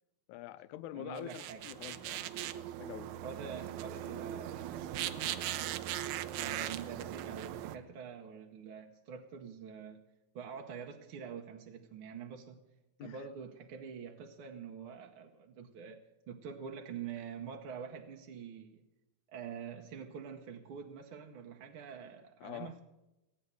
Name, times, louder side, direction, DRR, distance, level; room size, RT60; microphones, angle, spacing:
voice 1, 0.3-2.3 2.8-3.2 13.0-13.3 22.4-22.7, left 13 dB, 85° left, 14 dB, 2.0 m, -45 dB
voice 2, 0.9-1.7 3.2-5.7 6.4-10.0 10.3-12.6 13.0-18.8 19.3-22.8, right 7 dB, 65° right, 3 dB, 1.4 m, -46 dB
sound 1, 1.2-7.8, right 12 dB, 80° right, 2.0 m, -39 dB
16.5 x 8.8 x 7.8 m, 1.0 s
omnidirectional pair, 3.4 m